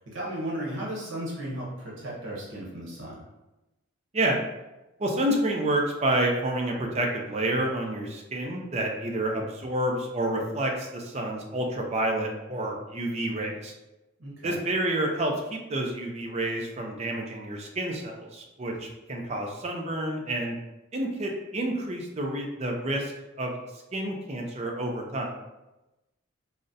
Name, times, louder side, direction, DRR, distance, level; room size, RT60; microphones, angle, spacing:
voice 1, 0.1-3.2 14.2-14.6, right 1 dB, 60° right, -5 dB, 0.9 m, -35 dB
voice 2, 5.0-13.7 14.4-20.6 20.9-23.1 23.4-23.5 23.9-25.3, right 1 dB, 30° right, 1 dB, 0.4 m, -29 dB
3.7 x 2.0 x 2.6 m, 1.0 s
head